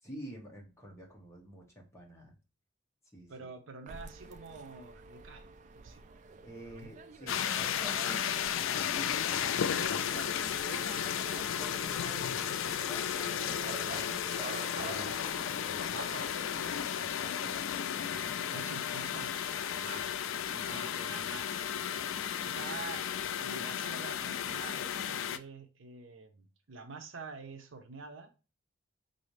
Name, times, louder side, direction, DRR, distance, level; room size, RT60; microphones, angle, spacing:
voice 1, 0.0-2.3 3.1-3.3 6.4-8.3 8.6-10.6 11.0-14.3 14.7-16.0 17.0-17.6 17.9-18.6 19.9-20.0 20.5-21.4, equal, 15° left, -1 dB, 1.0 m, -50 dB
voice 2, 3.3-5.5 5.7-6.1 6.6-6.9 15.9-16.4 18.5-19.3 19.7-20.2 20.6-21.5 22.4-28.3, right 4 dB, 75° right, 7 dB, 0.6 m, -47 dB
sound 1, 3.9-16.8, right 4 dB, 40° right, 0.3 m, -48 dB
sound 2, 7.3-25.4, left 9 dB, 75° left, 0.3 m, -34 dB
4.0 x 2.7 x 3.1 m, 0.31 s
head